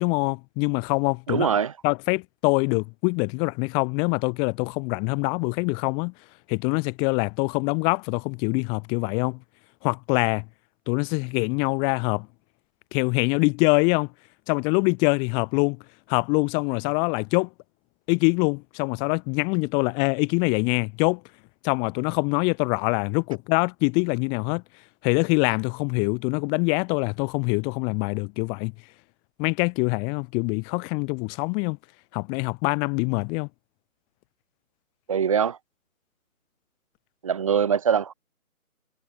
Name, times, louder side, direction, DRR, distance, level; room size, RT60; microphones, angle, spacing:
voice 1, 0.0-1.5 1.8-6.1 6.5-9.4 9.8-10.5 10.9-12.3 12.9-14.1 14.5-15.8 16.1-17.5 18.1-21.2 21.6-24.6 25.0-28.7 29.4-31.8 32.1-33.5, left 35 dB, 10° left, 2.5 m, -24 dB
voice 2, 1.3-1.7 35.1-35.6 37.2-38.1, right 7 dB, 25° right, 1.3 m, -22 dB
figure-of-eight pair, 160°, 43 cm